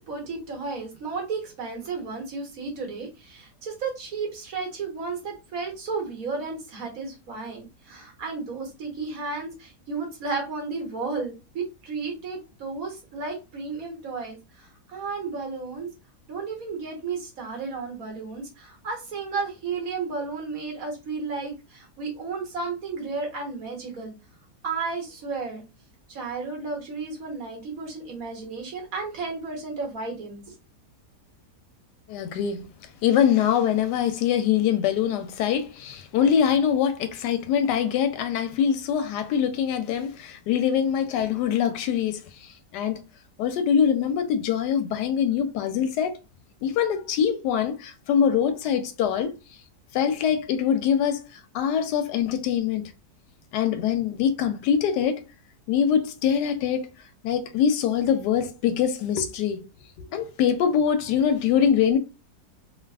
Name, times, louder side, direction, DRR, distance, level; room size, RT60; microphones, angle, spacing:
voice 1, 0.1-15.9 16.3-24.1 24.6-25.6 26.1-30.4, right 4 dB, 60° right, 1.5 m, -33 dB
voice 2, 32.1-32.6 33.0-42.2 42.7-43.0 43.4-46.2 46.6-49.3 49.9-51.2 51.5-52.9 53.5-55.2 55.7-56.9 57.2-59.6 60.0-62.0, left 8 dB, 90° left, 1.2 m, -23 dB
3.3 x 2.4 x 2.3 m
omnidirectional pair, 1.7 m